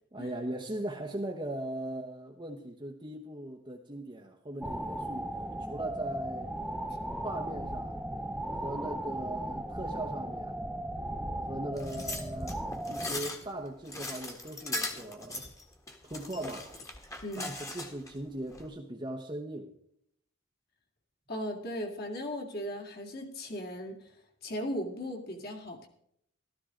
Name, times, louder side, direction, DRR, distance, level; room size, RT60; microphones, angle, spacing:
voice 1, 0.1-5.3 5.7-6.5 7.2-8.0 8.6-10.6 11.5-12.6 12.9-15.5 16.0-16.8 17.4-19.7, right 1 dB, 25° right, 1.0 m, -39 dB
sound 1, 4.6-13.1, right 1 dB, 5° right, 0.5 m, -37 dB
sound 2, 11.8-18.1 18.5-18.7, left 2 dB, 15° left, 1.6 m, -39 dB
voice 2, 17.2-17.5 21.3-24.0 24.4-25.9, equal, 45° left, 2.4 m, -37 dB
14.5 x 13.5 x 3.8 m
head